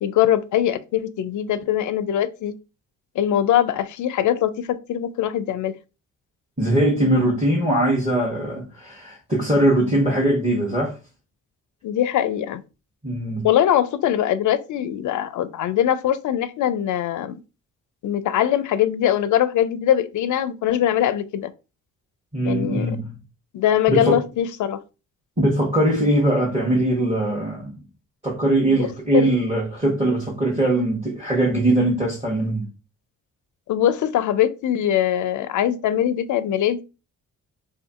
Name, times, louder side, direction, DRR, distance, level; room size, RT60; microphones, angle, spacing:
voice 1, 0.0-2.5 3.2-5.7 11.8-12.6 13.4-17.4 18.0-21.5 22.4-23.0 23.5-24.8 28.7-28.8 29.1-29.4 33.7-36.8, left 11 dB, 50° left, 0.4 m, -22 dB
voice 2, 6.6-11.0 13.0-13.5 22.3-23.1 23.9-24.2 25.4-27.8 28.2-32.6, right 1 dB, 15° right, 1.0 m, -21 dB
2.6 x 2.5 x 2.4 m
hypercardioid pair, 45°, 40 cm